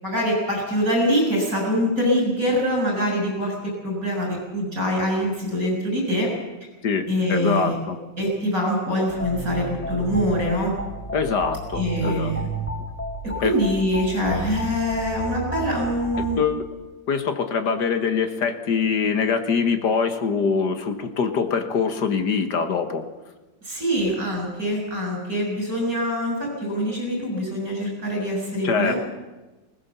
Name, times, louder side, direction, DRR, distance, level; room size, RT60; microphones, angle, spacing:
voice 1, 0.0-6.3 7.1-7.7 8.2-10.7 11.7-12.5 13.4-16.4 23.6-29.0, equal, 50° right, -1 dB, 7.3 m, -24 dB
voice 2, 6.8-8.0 11.1-12.3 13.4-13.5 16.4-16.6 17.1-23.0 28.6-28.9, left 5 dB, 65° left, 8 dB, 2.1 m, -23 dB
sound 1, 9.1-16.4, right 1 dB, 5° left, 1.9 m, -32 dB
20.5 x 18.5 x 7.0 m, 1.1 s
omnidirectional pair, 2.0 m